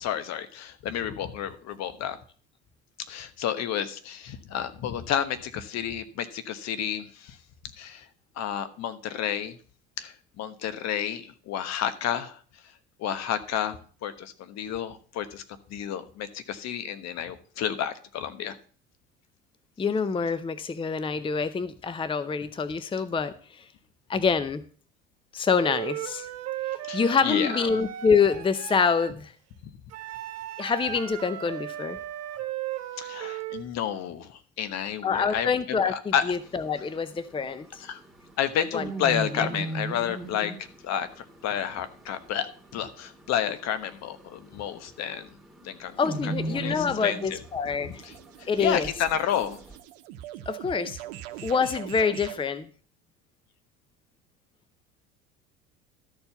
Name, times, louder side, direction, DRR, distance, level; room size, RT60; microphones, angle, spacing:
voice 1, 0.0-2.2 3.1-7.4 7.8-8.1 8.4-9.6 10.0-12.4 13.0-15.4 15.7-18.6 26.8-27.8 33.0-36.4 37.8-38.0 38.4-40.5 40.8-45.3 45.6-46.0 46.2-47.4 47.8-49.6, left 9 dB, 55° left, 12 dB, 1.2 m, -31 dB
voice 2, 19.8-23.3 24.1-24.6 25.3-26.3 26.9-29.3 30.6-32.0 35.0-37.8 38.7-38.8 46.0-48.0 48.5-48.9 50.5-51.0 51.4-52.7, left 5 dB, 15° left, 14 dB, 0.6 m, -26 dB
Wind instrument woodwind instrument, 25.6-29.1 29.9-33.6, right 13 dB, 55° right, 1.3 m, -36 dB
sound 1, 36.3-49.8, right 2 dB, ahead, 2.2 m, -39 dB
sound 2, 47.1-52.5, right 13 dB, 75° right, 0.8 m, -43 dB
13.0 x 4.4 x 6.9 m, 0.43 s
hypercardioid pair, 75°, 31 cm